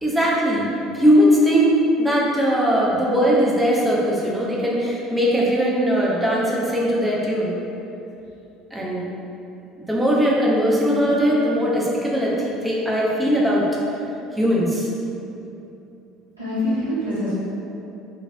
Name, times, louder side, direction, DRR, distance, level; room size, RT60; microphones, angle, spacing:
voice 1, 0.0-0.6 0.9-7.5 8.7-9.1 9.8-13.6 14.3-14.9, equal, 10° right, -5 dB, 0.5 m, -20 dB
voice 2, 16.4-17.4, left 1 dB, 90° right, -14 dB, 1.1 m, -25 dB
2.8 x 2.7 x 2.6 m, 2.8 s
figure-of-eight pair, 60°, 0 cm